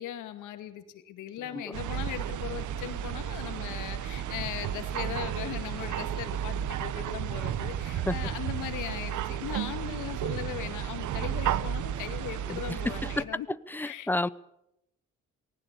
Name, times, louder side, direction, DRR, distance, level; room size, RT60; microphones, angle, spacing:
voice 1, 0.0-13.5 13.8-14.3, left 11 dB, 90° left, 8 dB, 2.3 m, -39 dB
sound 1, 1.7-13.2, right 10 dB, 75° right, 1.1 m, -33 dB
voice 2, 12.5-13.2 13.7-14.3, left 2 dB, 5° left, 17 dB, 0.8 m, -31 dB
20.0 x 18.5 x 8.3 m, 0.81 s
cardioid pair, 90°, 30 cm